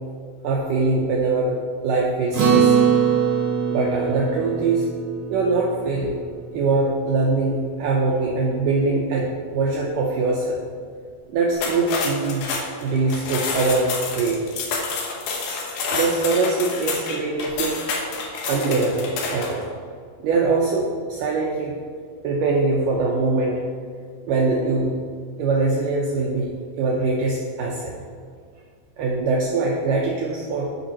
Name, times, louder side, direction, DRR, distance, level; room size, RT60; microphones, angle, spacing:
voice 1, 0.4-1.6 1.8-2.9 3.7-4.9 5.3-6.2 6.5-10.6 11.3-12.5 12.8-14.4 15.9-17.8 18.5-19.7 20.2-21.7 22.2-23.6 24.3-25.0 25.4-27.9 29.0-30.7, right 3 dB, 85° right, -2 dB, 1.9 m, -22 dB
Acoustic guitar, 2.3-7.0, right 7 dB, 50° right, 2.4 m, -22 dB
sound 1, 11.5-19.6, left 4 dB, 75° left, 2.6 m, -28 dB
12.5 x 5.5 x 2.9 m, 2.1 s
omnidirectional pair, 4.6 m